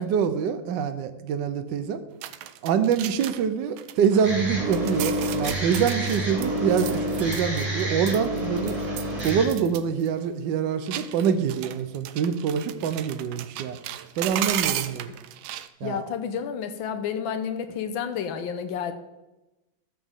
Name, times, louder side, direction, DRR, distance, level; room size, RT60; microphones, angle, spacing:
voice 1, 0.0-2.0 2.6-8.8 9.2-13.8 14.2-15.1 15.8-16.0, right 7 dB, 70° right, 9 dB, 1.3 m, -25 dB
sound 1, 2.2-3.5 3.8-4.4 4.7-7.8 8.1-9.8 10.1-10.2 10.9-15.7, right 12 dB, 90° right, 1.4 m, -34 dB
sound 2, 4.2-9.5, right 1 dB, 50° right, 2.9 m, -28 dB
voice 2, 15.8-18.9, left 7 dB, 80° left, 9 dB, 1.5 m, -30 dB
14.0 x 7.1 x 3.6 m, 1.0 s
omnidirectional pair, 2.1 m